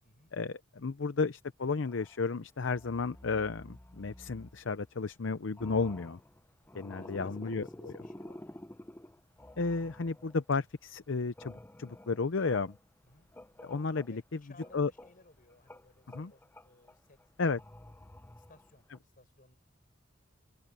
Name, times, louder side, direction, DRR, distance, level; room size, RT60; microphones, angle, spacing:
voice 1, 0.3-6.2 6.7-7.9 9.6-12.8 13.6-14.2 14.7-14.9 16.1-16.3 17.4-17.6, left 4 dB, 65° left, 0.7 m, -33 dB
sound 1, 1.8-2.3 2.7-5.2 5.5-10.6 10.9-14.3 14.6-19.0, left 1 dB, 10° left, 0.6 m, -51 dB
voice 2, 7.0-8.4 13.0-13.3 14.1-17.2 17.8-17.9 18.3-19.6, left 2 dB, 45° left, 7.2 m, -61 dB
head